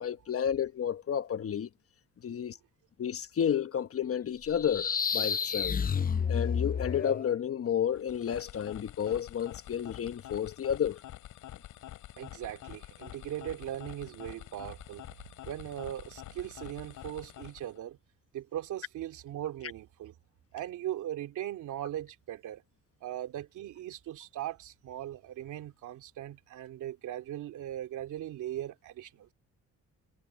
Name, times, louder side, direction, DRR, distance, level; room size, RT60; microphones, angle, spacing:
voice 1, 0.0-1.7 2.2-2.6 3.0-5.8 6.3-11.0, left 8 dB, 50° left, 1.2 m, -31 dB
sound 1, 4.5-7.3, left 6 dB, 30° left, 0.7 m, -30 dB
sound 2, 7.9-17.8, left 14 dB, 85° left, 6.1 m, -47 dB
voice 2, 12.2-15.0 15.4-18.0 18.3-20.1 20.5-22.6 23.0-29.3, right 12 dB, 80° right, 2.6 m, -39 dB
cardioid pair, 90°, 30 cm